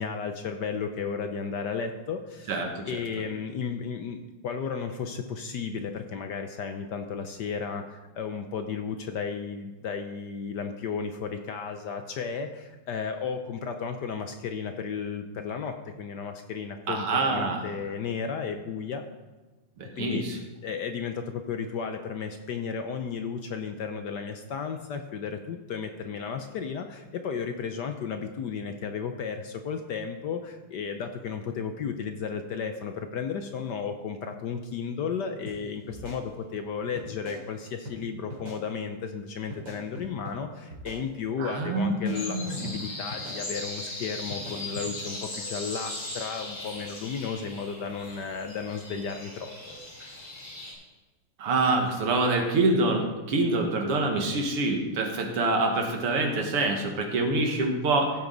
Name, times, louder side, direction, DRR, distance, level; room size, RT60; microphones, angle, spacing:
voice 1, 0.0-2.6 2.9-19.1 20.0-49.5, left 6 dB, 65° left, 6 dB, 1.1 m, -34 dB
voice 2, 2.5-2.9 16.9-17.6 19.8-20.4 41.4-42.7 51.4-58.1, right 2 dB, 90° right, 2 dB, 2.5 m, -26 dB
sound 1, 35.5-35.6 35.9-36.7 37.0-37.4 37.9-38.0 38.3-38.6 39.5-40.4 40.7-41.4 41.8-42.2 42.7-42.8 43.1-43.4 44.3-44.9, equal, 60° right, 3.5 m, -42 dB
sound 2, 42.1-50.7, left 1 dB, 85° left, 4.5 m, -38 dB
15.0 x 8.6 x 3.9 m, 1.2 s
omnidirectional pair, 2.4 m